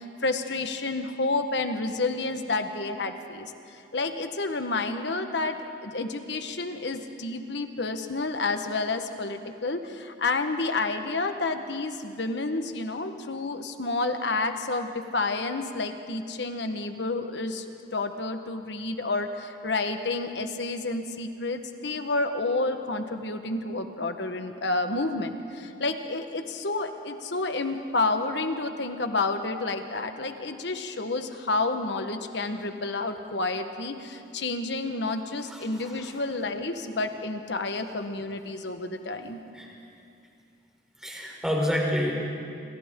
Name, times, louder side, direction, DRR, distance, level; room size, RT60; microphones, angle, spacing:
voice 1, 0.0-17.6 17.9-39.4, left 3 dB, 70° left, 7 dB, 1.3 m, -30 dB
voice 2, 35.4-36.2 39.5-39.7 41.0-42.1, equal, 5° right, -2 dB, 3.7 m, -29 dB
27.0 x 26.0 x 3.8 m, 2.5 s
head